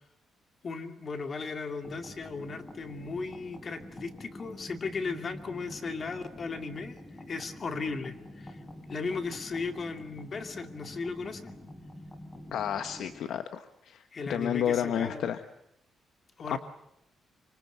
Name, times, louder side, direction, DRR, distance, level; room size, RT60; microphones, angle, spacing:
voice 1, 0.6-7.0 7.3-8.6 8.9-11.5 14.1-15.3 16.4-16.6, left 4 dB, 40° left, 7 dB, 2.4 m, -36 dB
sound 1, 1.8-13.2, left 1 dB, 15° left, 4.1 m, -47 dB
voice 2, 12.5-15.4 16.5-16.6, left 9 dB, 75° left, 9 dB, 1.3 m, -31 dB
25.5 x 24.5 x 8.0 m, 0.80 s
cardioid pair, 125°, 0 cm